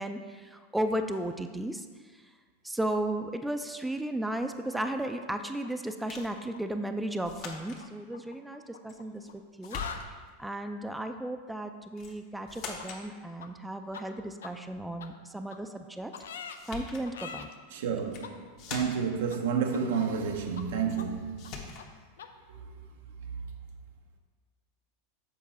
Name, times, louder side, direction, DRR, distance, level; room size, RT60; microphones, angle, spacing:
voice 1, 0.0-1.8 2.6-9.2 9.6-9.8 10.4-16.2 16.7-17.5, right 1 dB, 5° right, 0.4 m, -34 dB
sound 1, 4.7-6.2 6.5-6.8 7.8-9.3 9.6-10.0 12.8-12.9 13.4-13.5 13.9-14.0 14.4-14.5 15.0-15.1 15.5-15.6 16.1-16.6 17.1-17.4 18.2-18.3 18.8-18.9 19.3-19.4 19.7-20.3 20.6-20.7 21.0-21.1 21.4-21.5 21.8-21.9 22.2-22.3, left 7 dB, 90° left, 0.5 m, -42 dB
sound 2, 6.1-6.4 7.2-7.9 8.9-9.4 9.6-10.3 12.0-12.2 12.5-13.1 16.1-16.2 16.5-17.1 18.0-18.3 18.6-19.2 20.9-21.1 21.4-21.9, left 5 dB, 50° left, 1.2 m, -42 dB
voice 2, 17.7-21.5, right 6 dB, 75° right, 0.6 m, -30 dB
7.3 x 4.6 x 4.2 m
hypercardioid pair, 115°, 0 cm